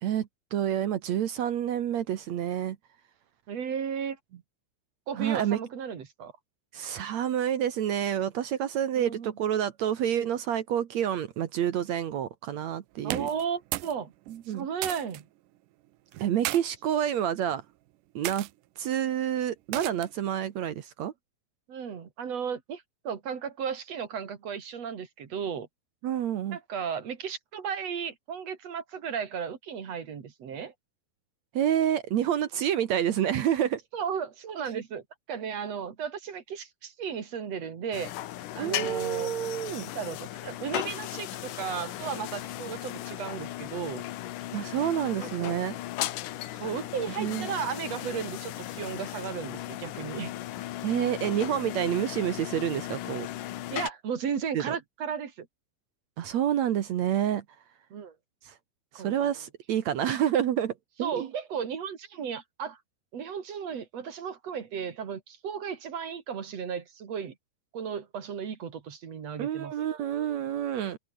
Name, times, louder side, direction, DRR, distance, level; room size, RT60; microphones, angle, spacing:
voice 1, 0.0-2.8 5.2-5.6 6.7-13.3 14.3-14.7 16.2-17.6 18.2-18.5 18.8-21.1 26.0-26.6 31.5-33.8 34.7-34.8 38.6-39.9 44.5-45.8 47.2-47.5 50.8-53.3 54.5-54.8 56.2-57.4 58.5-58.6 58.9-61.3 69.4-71.0, right 10 dB, 65° right, 1.8 m, -28 dB
voice 2, 3.5-4.2 5.1-6.3 9.0-9.4 13.0-14.1 14.5-15.3 21.7-25.7 26.5-30.7 33.9-38.1 38.5-39.3 39.9-44.1 45.2-45.5 46.6-50.3 53.7-55.5 57.9-58.2 58.9-59.3 61.0-62.8 63.1-67.3 67.7-69.7, right 7 dB, 45° right, 3.1 m, -35 dB
sound 1, 13.0-14.0 14.3-15.2 16.1-16.6 17.4-17.6 18.2-18.5 19.7-20.2, right 17 dB, 80° right, 1.9 m, -35 dB
sound 2, 37.9-53.9, left 14 dB, 70° left, 2.2 m, -37 dB
omnidirectional pair, 4.7 m